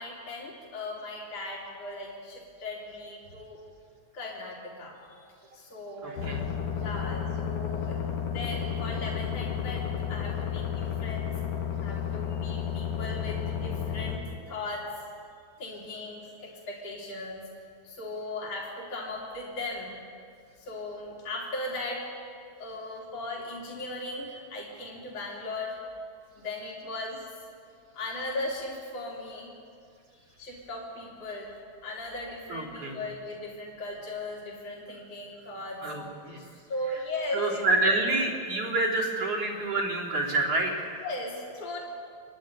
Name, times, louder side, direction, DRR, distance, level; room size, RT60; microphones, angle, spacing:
voice 1, 0.0-3.6 4.1-5.2 5.5-6.4 6.7-11.4 11.8-14.2 14.5-15.0 15.6-17.5 17.8-19.9 20.6-22.1 22.6-25.8 26.4-27.2 27.9-29.5 30.4-31.5 31.8-35.8 36.7-38.0 41.0-41.8, left 2 dB, 55° left, -3 dB, 4.4 m, -37 dB
voice 2, 6.0-6.4 32.5-33.0 35.8-36.4 37.3-40.9, right 2 dB, 55° right, -3 dB, 4.5 m, -28 dB
sound 1, 6.2-14.2, left 8 dB, 85° left, 3.3 m, -32 dB
29.0 x 11.0 x 9.0 m, 2.3 s
omnidirectional pair, 3.3 m